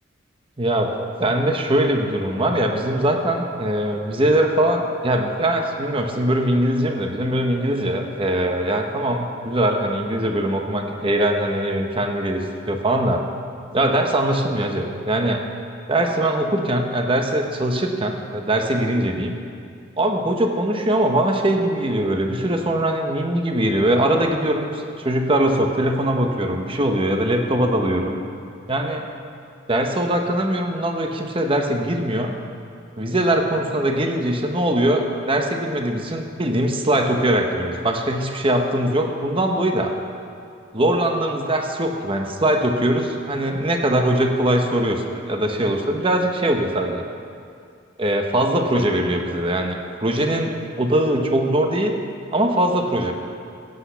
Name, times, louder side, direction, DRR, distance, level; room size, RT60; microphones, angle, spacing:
voice 1, 0.6-0.9 1.2-13.2 13.7-15.4 15.9-19.3 20.0-28.2 28.7-29.1 29.7-32.3 33.0-39.9 40.7-47.0 48.0-51.9 52.3-53.1, right 1 dB, 25° right, 3 dB, 1.0 m, -21 dB
16.5 x 8.2 x 5.7 m, 2.3 s
head